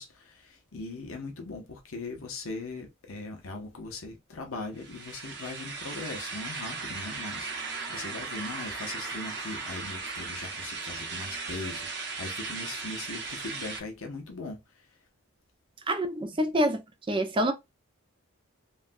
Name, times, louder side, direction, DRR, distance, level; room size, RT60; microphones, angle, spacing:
voice 1, 0.0-14.9, left 3 dB, 70° left, 0.8 m, -40 dB
sound 1, 4.8-13.8, right 4 dB, 50° right, 0.8 m, -37 dB
voice 2, 15.9-16.8 17.1-17.5, right 1 dB, 25° right, 0.4 m, -26 dB
3.2 x 2.2 x 2.5 m
head